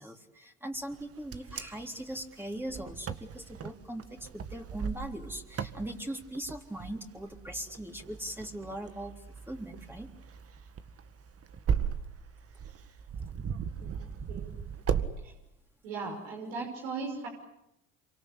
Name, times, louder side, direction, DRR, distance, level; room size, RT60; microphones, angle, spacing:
voice 1, 0.0-9.1 9.5-10.1, right 1 dB, 5° right, 2 dB, 3.7 m, -40 dB
Wind, 0.9-15.1, right 7 dB, 40° right, 2.0 m, -37 dB
voice 2, 14.3-14.7 15.2-15.3 15.8-17.3, right 4 dB, 80° right, 1 dB, 5.8 m, -38 dB
27.5 x 25.0 x 8.5 m, 0.85 s
hypercardioid pair, 70°, 37 cm